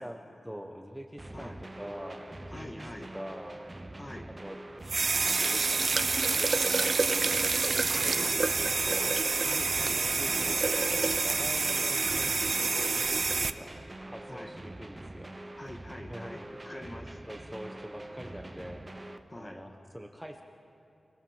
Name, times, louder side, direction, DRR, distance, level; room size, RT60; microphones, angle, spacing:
voice 1, 0.0-3.6 4.4-4.6 5.3-5.9 6.4-9.2 9.9-13.8 14.1-15.3 16.0-16.4 17.3-20.4, equal, ahead, 3 dB, 1.2 m, -44 dB
sound 1, 1.2-19.2, right 1 dB, 20° right, 0.9 m, -44 dB
voice 2, 2.5-3.1 4.0-4.3 7.9-8.5 9.4-10.0 10.5-10.6 11.9-12.1 14.3-14.5 15.6-17.2 19.3-19.6, left 1 dB, 25° left, 5 dB, 1.7 m, -44 dB
sound 2, 4.9-13.5, right 4 dB, 60° right, 0.7 m, -27 dB
27.5 x 20.0 x 7.3 m, 2.7 s
wide cardioid pair, 95°, 0 cm